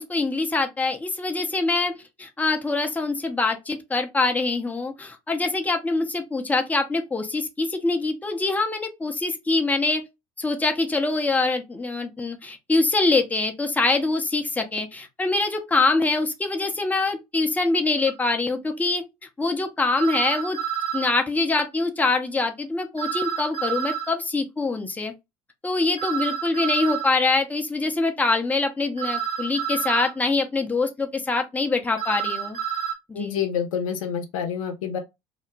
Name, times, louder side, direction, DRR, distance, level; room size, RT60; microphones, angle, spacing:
voice 1, 0.0-10.1 10.4-19.0 19.4-20.6 20.9-25.1 25.6-32.6 33.1-33.4, left 3 dB, 10° left, 0.6 m, -24 dB
sound 1, 18.0-18.1 20.0-21.1 23.0-24.1 26.0-27.1 29.0-30.1 32.0-32.9, right 8 dB, 50° right, 0.9 m, -29 dB
voice 2, 33.1-35.0, left 7 dB, 75° left, 0.6 m, -27 dB
2.5 x 2.1 x 3.1 m
figure-of-eight pair, 70°, 18 cm